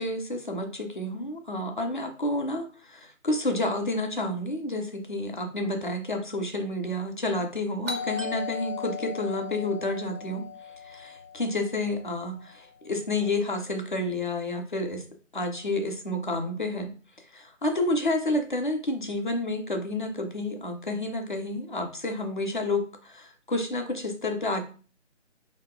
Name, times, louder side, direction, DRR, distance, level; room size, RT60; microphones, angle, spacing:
voice 1, 0.0-10.4 10.8-15.0 15.3-16.9 17.3-24.6, left 2 dB, 40° left, 4 dB, 0.6 m, -30 dB
Doorbell, 7.9-12.5, left 6 dB, 70° right, 1.5 m, -37 dB
3.9 x 2.8 x 3.5 m, 0.39 s
figure-of-eight pair, 170°, 38 cm